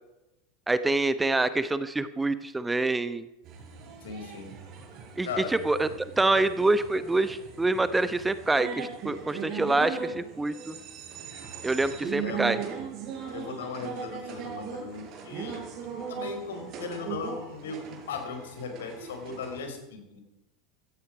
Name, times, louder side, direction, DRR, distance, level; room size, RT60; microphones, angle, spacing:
voice 1, 0.7-3.3 5.2-5.9 6.2-10.8 11.6-12.6, right 2 dB, 10° right, 13 dB, 1.0 m, -26 dB
sound 1, 3.4-19.6, right 6 dB, 45° right, 4.7 m, -39 dB
voice 2, 4.0-4.5 5.2-5.5 12.2-12.5 13.3-15.6 16.1-20.2, left 5 dB, 70° left, 5 dB, 4.2 m, -37 dB
16.0 x 16.0 x 4.9 m, 0.91 s
hypercardioid pair, 85°, 0 cm